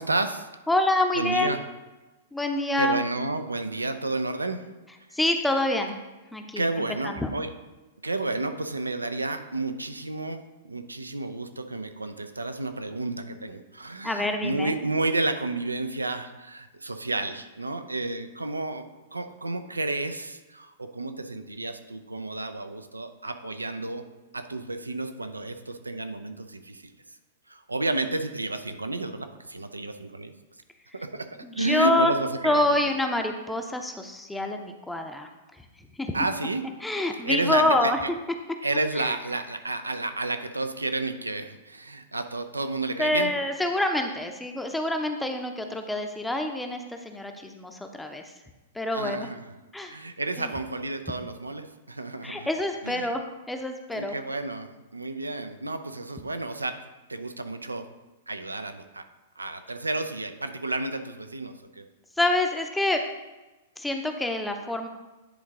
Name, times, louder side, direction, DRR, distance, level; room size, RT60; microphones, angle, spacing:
voice 1, 0.0-0.5 1.1-1.6 2.8-4.7 5.1-5.2 6.6-7.5 8.0-24.1 24.3-26.9 27.5-30.3 30.9-32.7 36.1-36.7 37.1-38.1 38.6-43.3 48.9-49.4 49.8-52.5 52.8-53.1 53.9-56.8 57.1-57.9 58.3-59.0 59.4-61.8, right 2 dB, 90° right, 8 dB, 0.6 m, -31 dB
voice 2, 0.7-1.6 2.3-3.0 5.1-6.0 6.3-6.6 7.0-7.3 14.0-14.7 31.4-32.1 32.4-35.3 36.0-36.1 36.8-38.0 39.0-39.1 43.0-48.2 48.7-49.3 49.7-50.0 50.4-50.5 52.2-54.1 62.2-63.0 63.8-64.9, left 1 dB, 5° left, 4 dB, 0.6 m, -26 dB
10.0 x 3.8 x 3.6 m, 1.1 s
figure-of-eight pair, 105°, 0 cm